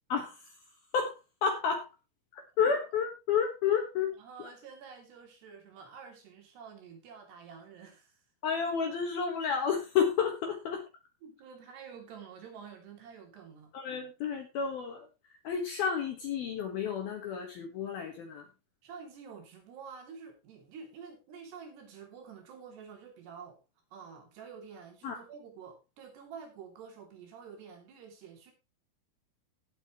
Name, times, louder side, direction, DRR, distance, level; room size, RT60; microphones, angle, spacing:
voice 1, 0.1-0.6 0.9-1.9 2.3-4.5 8.4-10.8 13.7-15.1 15.4-18.5 25.0-25.2, left 6 dB, 60° left, 2.8 m, -31 dB
voice 2, 4.2-8.2 11.2-13.8 18.8-23.6 23.9-28.5, right 6 dB, 60° right, 5.2 m, -49 dB
17.5 x 8.1 x 3.1 m
omnidirectional pair, 5.8 m